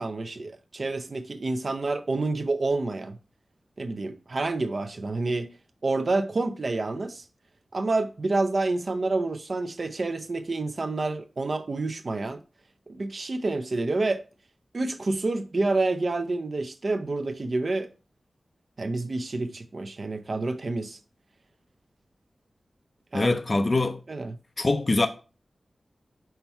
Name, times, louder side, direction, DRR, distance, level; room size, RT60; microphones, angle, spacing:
voice 1, 0.0-3.2 3.8-5.5 5.8-7.2 7.7-12.4 12.9-14.2 14.7-17.9 18.8-21.0 23.1-23.3 24.1-24.4, right 3 dB, 50° right, 0.5 m, -28 dB
voice 2, 23.1-24.0 24.6-25.1, left 2 dB, 40° left, 0.5 m, -23 dB
5.6 x 4.5 x 4.4 m
wide cardioid pair, 95°, 0 cm